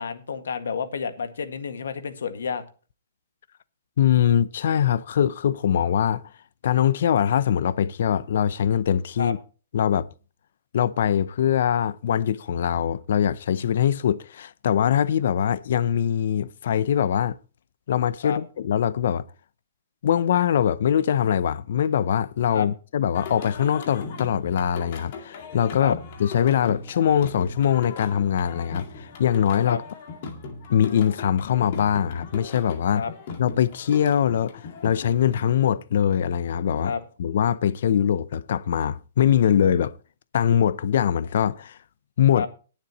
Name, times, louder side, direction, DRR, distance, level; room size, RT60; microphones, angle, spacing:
voice 1, 0.0-2.6 9.2-9.3 18.2-18.4 22.5-22.7 25.8-26.0 29.6-29.8 32.9-33.1 36.8-37.0 42.3-42.5, left 6 dB, 80° left, 1.8 m, -30 dB
voice 2, 4.0-6.2 6.6-9.4 9.7-10.1 10.7-17.4 17.9-19.2 20.0-29.8 30.7-33.0 33.4-36.9 37.2-39.9 40.3-41.8 42.2-42.5, left 9 dB, 50° left, 0.5 m, -22 dB
Singing, 23.1-35.5, left 4 dB, 35° left, 2.1 m, -38 dB
20.0 x 7.3 x 3.0 m
hypercardioid pair, 175°, 0 cm